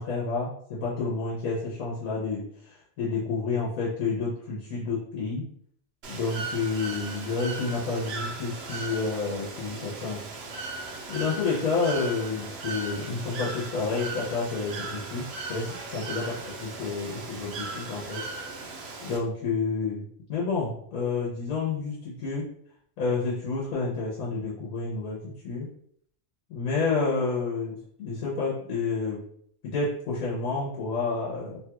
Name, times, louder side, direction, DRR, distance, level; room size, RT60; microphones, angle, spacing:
voice 1, 0.0-5.5 6.1-10.2 11.1-16.3 16.6-18.2 19.0-22.5 23.0-25.2 25.4-25.7 26.5-29.2 29.6-31.6, left 4 dB, 85° left, -6 dB, 1.3 m, -29 dB
Bird / Water, 6.0-19.2, right 3 dB, 60° right, 0.8 m, -37 dB
3.0 x 2.3 x 2.9 m, 0.63 s
omnidirectional pair, 1.4 m